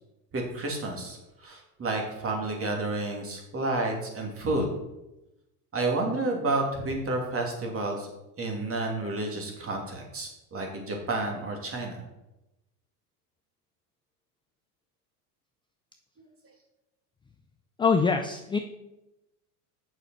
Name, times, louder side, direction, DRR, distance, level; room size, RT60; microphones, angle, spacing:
voice 1, 0.3-4.7 5.7-8.1 8.4-12.0 16.2-16.3, right 2 dB, 30° right, 1 dB, 2.8 m, -30 dB
voice 2, 17.8-18.6, left 5 dB, 10° left, 6 dB, 0.4 m, -24 dB
7.9 x 6.4 x 5.8 m, 0.94 s
supercardioid pair, 110°, 47 cm